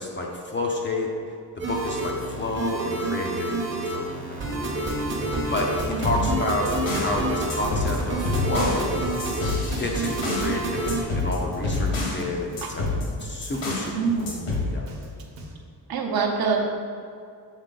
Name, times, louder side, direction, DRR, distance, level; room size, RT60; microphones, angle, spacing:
voice 1, 0.0-5.0 5.5-8.9 9.8-14.3 14.7-14.9, left 2 dB, 30° left, 0 dB, 0.4 m, -30 dB
sound 1, 1.6-11.0, right 2 dB, 25° right, 0.8 m, -28 dB
Drum kit, 4.9-15.5, right 1 dB, 80° right, 1.1 m, -44 dB
sound 2, 5.9-7.2 7.5-10.5 10.9-12.2 12.6-13.9 14.3-14.7, left 2 dB, 85° left, 1.5 m, -28 dB
voice 2, 13.9-14.6 15.9-16.6, right 5 dB, 55° right, 1 dB, 0.8 m, -26 dB
6.4 x 4.0 x 3.8 m, 2.3 s
cardioid pair, 175°, 43 cm